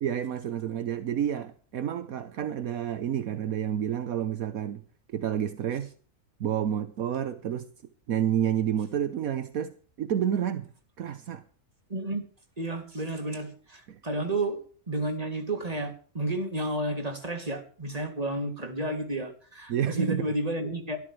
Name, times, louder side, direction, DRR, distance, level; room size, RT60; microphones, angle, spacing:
voice 1, 0.0-4.8 5.1-5.9 6.4-7.7 8.1-9.7 10.0-10.7 11.0-11.4 13.9-14.0 19.7-20.3, right 9 dB, 70° right, 1.3 m, -29 dB
voice 2, 11.9-12.2 12.6-14.6 14.9-21.0, right 1 dB, 25° right, 2.9 m, -31 dB
22.0 x 13.0 x 3.3 m
omnidirectional pair, 1.6 m